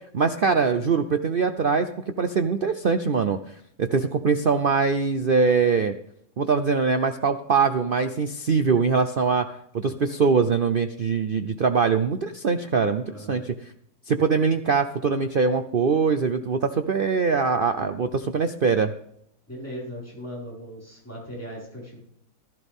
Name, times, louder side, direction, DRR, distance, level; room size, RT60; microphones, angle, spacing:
voice 1, 0.1-1.9 2.2-3.4 3.8-5.9 6.4-9.5 9.7-13.5 14.1-18.9, right 5 dB, 90° right, 9 dB, 0.4 m, -22 dB
voice 2, 13.0-13.5 19.5-22.0, equal, 10° left, -5 dB, 5.3 m, -38 dB
15.5 x 13.5 x 3.6 m, 0.72 s
omnidirectional pair, 1.9 m